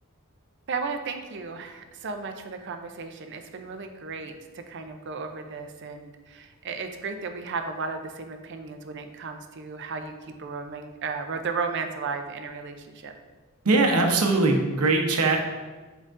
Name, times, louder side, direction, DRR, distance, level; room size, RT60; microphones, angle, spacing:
voice 1, 0.7-10.1 10.4-13.1, right 4 dB, 50° right, 6 dB, 0.5 m, -34 dB
voice 2, 13.6-15.5, right 3 dB, 85° right, 2 dB, 0.9 m, -21 dB
7.5 x 4.9 x 2.6 m, 1.3 s
head